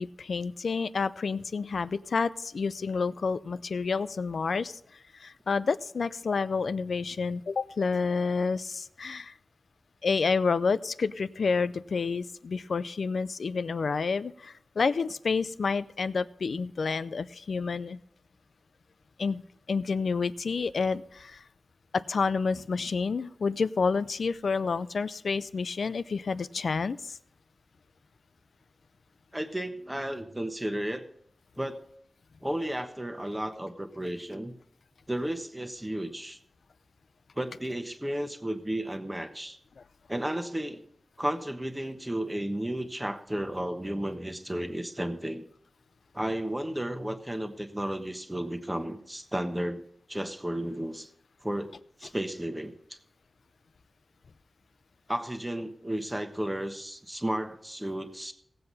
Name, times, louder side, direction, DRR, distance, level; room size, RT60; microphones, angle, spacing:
voice 1, 0.0-4.8 5.2-9.3 10.0-18.0 19.2-19.4 19.7-21.4 21.9-27.2 39.8-39.9, left 4 dB, 75° left, 15 dB, 0.5 m, -29 dB
voice 2, 29.3-31.0 31.6-31.8 32.4-34.5 35.1-36.4 37.4-39.6 40.1-40.8 41.2-45.4 46.1-49.8 50.1-51.1 51.4-51.7 52.0-53.0 55.1-58.3, right 1 dB, 10° right, 7 dB, 1.1 m, -33 dB
17.5 x 7.7 x 4.1 m, 0.70 s
wide cardioid pair, 115°, 0 cm